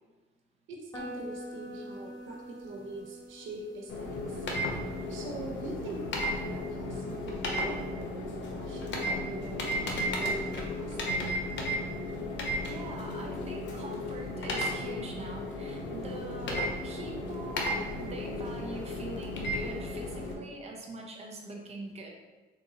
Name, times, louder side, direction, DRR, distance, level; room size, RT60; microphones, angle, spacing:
voice 1, 0.7-4.5 5.1-11.0 16.9-17.1, right 2 dB, 85° right, 0 dB, 0.7 m, -43 dB
sound 1, 0.9-6.7, equal, 20° left, 1.0 m, -46 dB
sound 2, 3.9-20.3, left 1 dB, 65° left, 0.7 m, -34 dB
voice 2, 12.7-22.1, right 2 dB, 35° right, 0 dB, 0.6 m, -43 dB
3.8 x 2.5 x 2.8 m, 1.2 s
cardioid pair, 90°, 20 cm